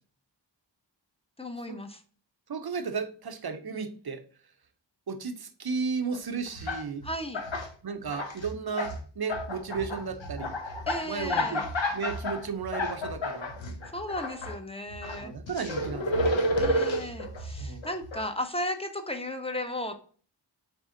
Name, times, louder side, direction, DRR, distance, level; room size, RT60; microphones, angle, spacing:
voice 1, 1.4-2.0 7.0-7.4 10.9-11.6 13.9-15.3 16.6-19.9, left 1 dB, 15° left, 7 dB, 0.6 m, -35 dB
voice 2, 2.5-4.2 5.1-7.0 7.8-10.6 11.0-11.7 11.9-13.5 15.2-16.5 17.6-17.9, right 5 dB, 55° right, 9 dB, 0.6 m, -34 dB
sound 1, 6.1-6.2 6.5-7.7 8.0-9.0 9.3-14.5 14.9-18.2, left 1 dB, 80° left, 0.8 m, -31 dB
4.3 x 3.3 x 3.7 m, 0.42 s
wide cardioid pair, 45°, 45 cm